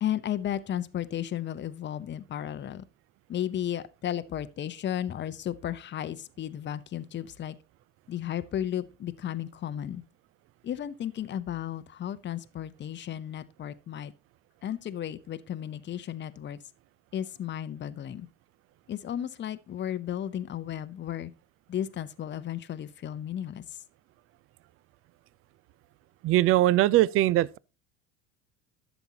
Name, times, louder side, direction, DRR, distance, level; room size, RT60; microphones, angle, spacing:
voice 1, 0.0-2.8 3.3-7.5 8.1-10.0 10.6-14.1 14.6-16.6 17.1-18.3 18.9-21.3 21.7-23.6, left 10 dB, 30° left, 0.7 m, -34 dB
voice 2, 26.2-27.6, right 15 dB, 35° right, 0.4 m, -21 dB
11.5 x 7.0 x 2.8 m
hypercardioid pair, 80°, 38 cm